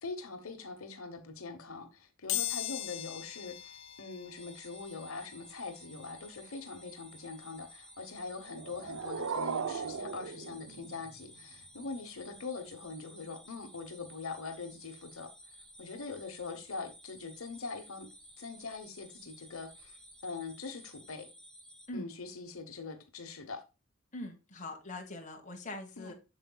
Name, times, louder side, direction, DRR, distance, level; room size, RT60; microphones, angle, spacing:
voice 1, 0.0-15.3 15.8-18.1 18.4-21.3 21.9-23.6 26.0-26.1, left 4 dB, 85° left, 1.1 m, -43 dB
sound 1, 2.3-13.0 13.4-13.5 14.7-14.8 15.1-17.1 17.5-20.1 20.5-20.7 21.0-21.1, left 14 dB, 65° left, 1.4 m, -44 dB
sound 2, 4.4-21.9, equal, 5° left, 1.1 m, -55 dB
sound 3, 8.4-11.4, right 6 dB, 70° right, 0.5 m, -38 dB
voice 2, 24.1-26.1, left 2 dB, 35° left, 1.4 m, -42 dB
7.7 x 6.6 x 2.3 m
head